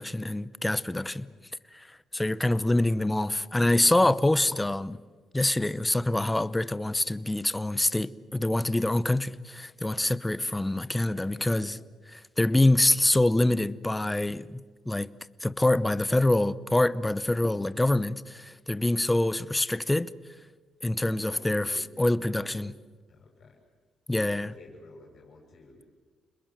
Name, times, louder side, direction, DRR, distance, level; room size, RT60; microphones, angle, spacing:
voice 1, 0.0-1.3 1.7-5.0 5.3-11.8 12.1-14.6 14.9-15.1 15.4-20.1 20.8-21.7 22.0-22.7 24.1-24.5, left 1 dB, 10° left, 0.8 m, -25 dB
voice 2, 0.9-1.4 2.6-3.0 11.0-11.8 12.6-12.7 17.7-17.9 21.1-22.7 23.1-23.6 24.3-25.8, left 3 dB, 55° left, 7.3 m, -52 dB
28.5 x 21.0 x 7.8 m
cardioid pair, 90°, 0 cm